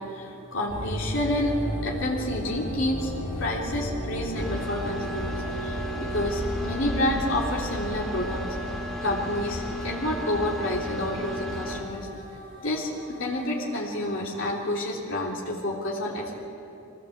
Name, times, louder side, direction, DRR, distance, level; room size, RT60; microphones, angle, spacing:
voice 1, 0.0-3.1 3.4-8.4 9.0-12.1 12.6-16.3, left 1 dB, 60° left, -3 dB, 3.4 m, -29 dB
sound 1, 0.7-14.8, equal, 35° left, 3.7 m, -36 dB
sound 2, 4.3-11.8, equal, ahead, 2.9 m, -35 dB
23.5 x 17.5 x 8.0 m, 2.8 s
head